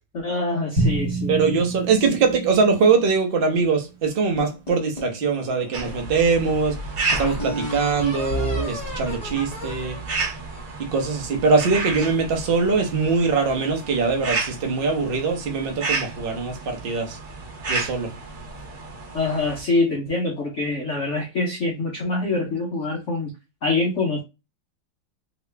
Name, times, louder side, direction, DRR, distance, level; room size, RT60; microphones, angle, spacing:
voice 1, 0.1-1.3 19.1-23.3 23.6-24.2, left 3 dB, 75° left, 0.6 m, -25 dB
Drum, 0.8-3.7, right 2 dB, 25° right, 1.2 m, -28 dB
voice 2, 1.3-6.8 7.1-10.0 10.8-17.2 17.7-18.1, right 4 dB, 85° right, 0.5 m, -22 dB
sound 1, 4.4-5.9 6.5-6.6 7.1-11.3, equal, 30° left, 0.8 m, -33 dB
sound 2, 5.7-19.6, right 3 dB, 45° right, 0.9 m, -32 dB
3.0 x 2.9 x 3.3 m
omnidirectional pair, 2.2 m